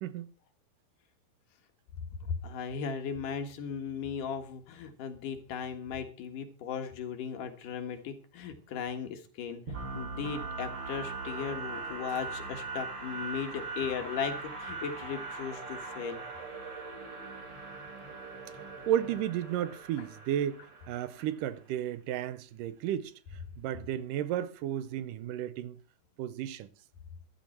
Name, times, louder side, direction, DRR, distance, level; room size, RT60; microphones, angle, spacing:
voice 1, 2.2-9.6 9.9-16.2, left 6 dB, 75° left, 3.1 m, -37 dB
sound 1, 9.7-21.4, right 4 dB, 35° right, 3.1 m, -40 dB
voice 2, 18.9-20.6 20.9-23.1 23.6-25.8 26.2-26.7, right 11 dB, 80° right, 2.4 m, -33 dB
14.5 x 12.5 x 4.4 m
omnidirectional pair, 3.8 m